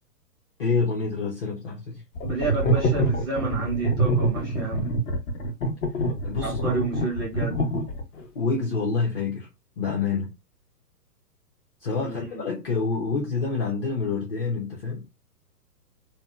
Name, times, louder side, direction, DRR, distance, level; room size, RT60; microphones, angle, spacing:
voice 1, 0.6-2.0 6.2-6.8 8.3-9.5 9.8-10.4 11.8-15.1, left 4 dB, 35° left, 0.6 m, -27 dB
sound 1, 2.1-8.2, right 1 dB, 60° left, 1.1 m, -25 dB
voice 2, 2.2-4.9 6.4-7.6 12.0-12.4, right 3 dB, 15° right, 0.4 m, -31 dB
2.6 x 2.2 x 2.3 m
hypercardioid pair, 140°, 48 cm